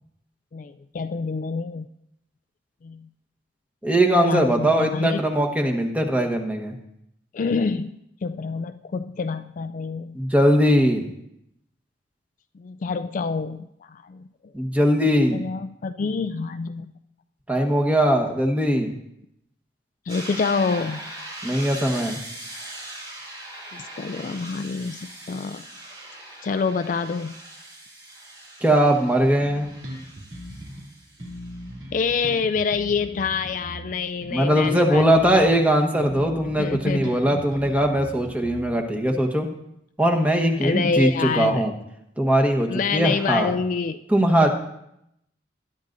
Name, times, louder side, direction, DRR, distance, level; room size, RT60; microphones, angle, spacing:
voice 1, 0.5-1.9 2.8-3.1 4.2-5.2 7.3-8.0 8.2-10.2 12.5-14.5 15.3-16.9 20.1-21.1 23.7-25.6 26.4-27.4 31.9-35.4 36.6-37.4 40.6-41.6 42.7-44.0 44.4-44.5, left 5 dB, 45° left, 9 dB, 0.3 m, -27 dB
voice 2, 3.8-6.7 10.1-11.1 14.5-15.4 17.5-18.9 21.4-22.2 28.6-29.7 34.3-39.5 40.0-41.7 42.2-43.5 44.1-44.5, equal, 10° right, 2 dB, 1.2 m, -20 dB
sound 1, 20.1-31.7, right 1 dB, 25° right, 2.7 m, -40 dB
Bass guitar, 29.4-30.9 31.2-35.7 36.0-39.0, equal, 85° right, 2.9 m, -39 dB
21.0 x 11.0 x 2.6 m, 0.78 s
head